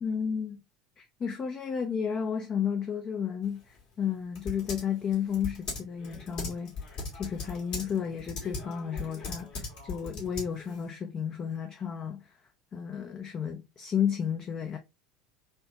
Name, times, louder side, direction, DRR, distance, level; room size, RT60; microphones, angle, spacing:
voice 1, 0.0-0.6 1.0-12.2 12.7-14.8, left 7 dB, 30° left, 0.5 m, -32 dB
Typing, 3.4-10.9, left 4 dB, 50° left, 1.8 m, -40 dB
3.4 x 2.8 x 2.6 m
figure-of-eight pair, 70°, 2 cm